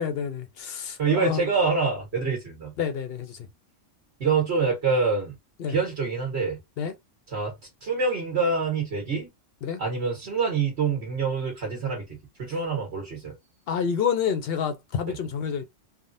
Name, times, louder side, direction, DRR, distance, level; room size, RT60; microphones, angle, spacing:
voice 1, 0.0-1.4 2.8-3.4 5.6-5.8 6.8-6.9 9.6-9.8 13.7-15.6, left 7 dB, 60° left, 0.7 m, -28 dB
voice 2, 1.0-2.7 4.2-5.3 5.7-6.6 7.3-7.5 7.8-9.3 9.8-13.3 15.1-15.2, right 4 dB, 55° right, 1.3 m, -26 dB
3.5 x 2.0 x 2.6 m
omnidirectional pair, 1.3 m